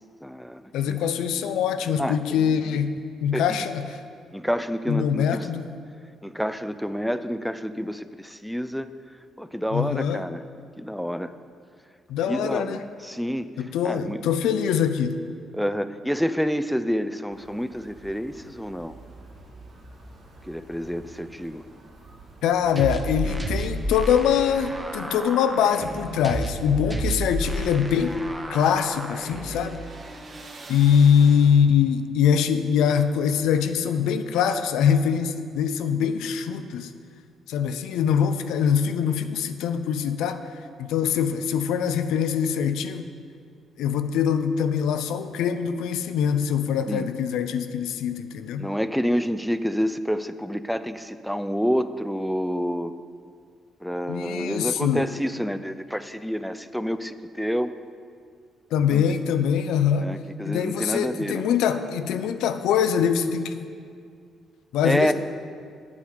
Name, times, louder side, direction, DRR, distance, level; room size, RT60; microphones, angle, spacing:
voice 1, 0.2-0.6 0.9-1.0 2.0-2.6 3.3-3.6 4.3-5.5 6.2-8.9 9.4-10.4 10.8-11.3 12.3-13.5 13.8-14.2 15.5-18.9 20.4-21.6 46.9-47.1 48.6-52.9 53.8-57.7 58.9-59.0 60.0-61.5 64.8-65.1, equal, ahead, 11 dB, 0.4 m, -28 dB
voice 2, 0.7-2.9 3.2-4.0 4.9-5.6 9.7-10.2 12.1-12.8 13.6-15.2 22.4-28.2 28.5-29.8 30.7-36.9 37.5-40.4 40.8-43.0 43.8-48.7 54.1-55.0 58.7-60.1 60.4-63.6 64.7-65.1, left 8 dB, 90° left, 9 dB, 0.5 m, -23 dB
sound 1, 17.3-24.0, right 2 dB, 70° right, 2.2 m, -48 dB
sound 2, 22.8-29.8, right 1 dB, 15° right, 0.9 m, -31 dB
sound 3, 26.7-31.9, right 2 dB, 45° right, 1.5 m, -47 dB
8.7 x 8.4 x 5.0 m, 2.2 s
cardioid pair, 90°, 0 cm